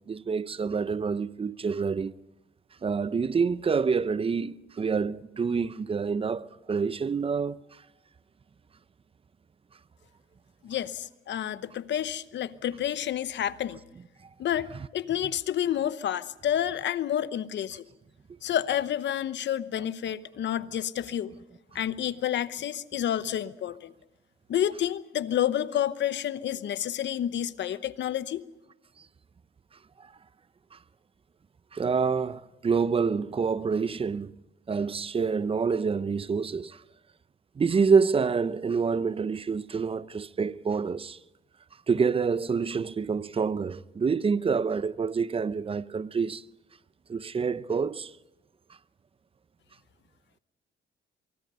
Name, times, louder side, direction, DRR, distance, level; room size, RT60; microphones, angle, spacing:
voice 1, 0.0-2.1 2.8-7.8 30.0-30.1 30.7-30.8 31.7-34.3 34.7-36.8 37.6-41.2 41.9-46.4 47.1-48.1, right 5 dB, 30° right, 0.7 m, -27 dB
voice 2, 10.6-13.8 14.4-17.8 18.4-21.3 21.7-23.9 24.5-28.5, left 10 dB, 65° left, 0.9 m, -29 dB
23.5 x 23.5 x 5.6 m
cardioid pair, 90°, 20 cm